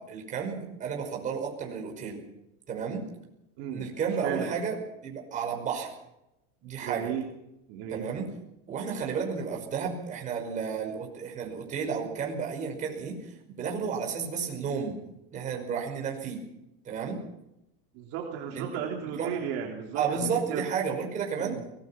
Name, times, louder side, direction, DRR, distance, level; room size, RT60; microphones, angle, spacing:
voice 1, 0.0-2.2 2.7-3.1 3.7-5.9 6.6-7.1 7.9-8.3 8.7-13.2 13.5-15.0 15.3-16.4 16.9-17.2 18.5-18.8 19.2-19.3 19.9-21.6, right 6 dB, 25° right, 0 dB, 5.5 m, -32 dB
voice 2, 3.6-3.9 4.2-4.6 6.8-7.2 7.7-8.1 17.9-20.7 21.4-21.7, right 8 dB, 50° right, 0 dB, 3.4 m, -34 dB
23.5 x 19.5 x 5.9 m, 0.86 s
supercardioid pair, 160°, 31 cm